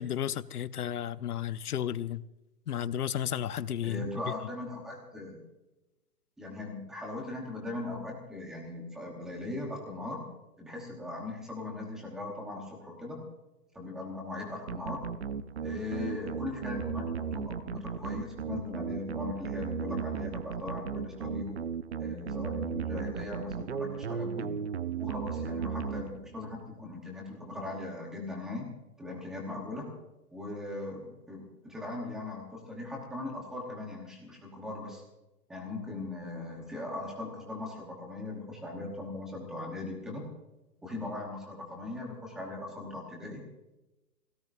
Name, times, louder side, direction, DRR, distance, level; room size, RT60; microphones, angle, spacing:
voice 1, 0.0-2.2 2.7-4.1, left 10 dB, 70° left, 0.9 m, -33 dB
voice 2, 3.8-5.4 6.4-10.2 10.6-13.2 13.7-15.1 15.6-21.6 22.0-24.5 25.0-28.7 29.0-29.9 30.3-35.0 35.5-40.2 40.8-43.4, left 2 dB, ahead, 1.1 m, -39 dB
sound 1, 14.7-26.5, right 6 dB, 45° right, 0.6 m, -35 dB
26.5 x 17.5 x 2.6 m
hypercardioid pair, 175°, 47 cm